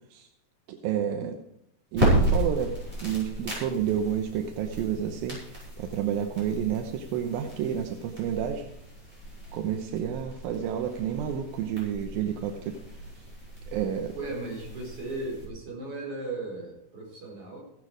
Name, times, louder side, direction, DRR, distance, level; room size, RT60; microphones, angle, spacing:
voice 1, 0.7-1.4 1.9-8.6 9.5-12.8 13.7-14.2, right 9 dB, 85° right, 5 dB, 2.7 m, -30 dB
sound 1, 1.9-15.4, right 1 dB, 15° right, 5.9 m, -33 dB
voice 2, 14.1-17.6, right 2 dB, 40° right, -2 dB, 5.0 m, -36 dB
16.0 x 11.0 x 4.9 m, 0.76 s
omnidirectional pair, 4.1 m